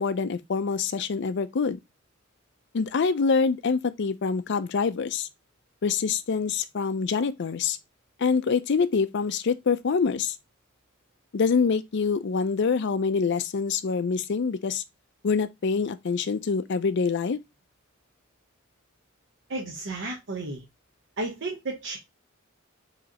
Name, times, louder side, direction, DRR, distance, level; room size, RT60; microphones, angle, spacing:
voice 1, 0.0-1.8 2.7-5.3 5.8-7.8 8.2-10.3 11.3-14.8 15.2-17.4, left 5 dB, 60° left, 0.5 m, -25 dB
voice 2, 19.5-20.6 21.2-22.0, right 2 dB, 60° right, 1.0 m, -33 dB
4.9 x 3.1 x 2.9 m
head